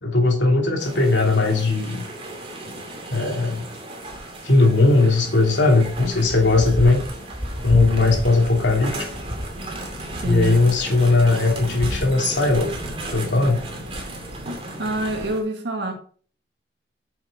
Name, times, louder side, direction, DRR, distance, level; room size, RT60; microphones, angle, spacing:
voice 1, 0.0-2.0 3.1-3.7 4.4-7.0 7.6-9.1 10.2-12.7 13.1-13.6, left 3 dB, 90° left, 2.8 m, -18 dB
sound 1, 0.8-15.4, right 1 dB, 35° right, 2.6 m, -32 dB
voice 2, 10.2-10.6 14.8-15.9, right 1 dB, 75° right, 1.6 m, -26 dB
9.2 x 6.6 x 4.1 m
head